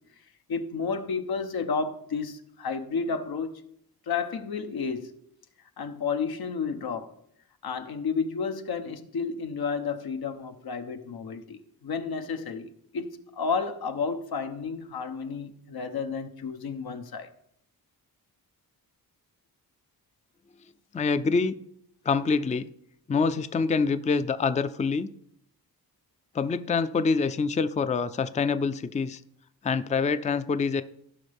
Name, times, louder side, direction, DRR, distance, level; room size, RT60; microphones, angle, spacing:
voice 1, 0.5-3.6 4.1-5.1 5.8-7.1 7.6-17.3, left 5 dB, 80° left, 0.9 m, -31 dB
voice 2, 20.9-21.6 22.0-22.7 23.1-25.1 26.3-29.2 29.6-30.8, left 4 dB, 20° left, 0.4 m, -26 dB
16.0 x 5.5 x 3.5 m
wide cardioid pair, 90°, 37 cm